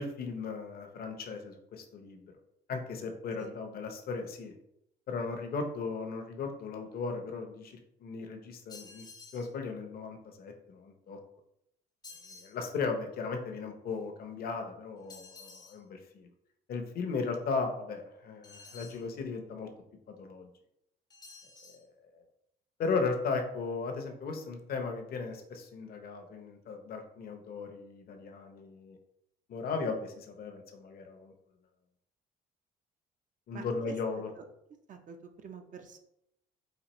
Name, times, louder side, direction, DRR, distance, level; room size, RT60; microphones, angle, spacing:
voice 1, 0.0-2.3 2.7-4.5 5.1-9.1 9.3-11.2 12.4-16.3 16.7-19.7 20.1-20.5 21.7-21.8 22.1-22.2 22.8-29.0 29.5-31.3 33.5-34.3, left 4 dB, 55° left, 4 dB, 0.7 m, -36 dB
sound 1, 8.7-9.5 12.0-12.6 15.1-15.8 18.4-19.1 21.1-21.8, left 4 dB, 20° left, 0.6 m, -51 dB
voice 2, 33.5-33.9 34.4-34.5 34.9-36.0, right 6 dB, 45° right, 6 dB, 0.6 m, -47 dB
4.2 x 2.5 x 3.0 m, 0.79 s
cardioid pair, 95°, 18 cm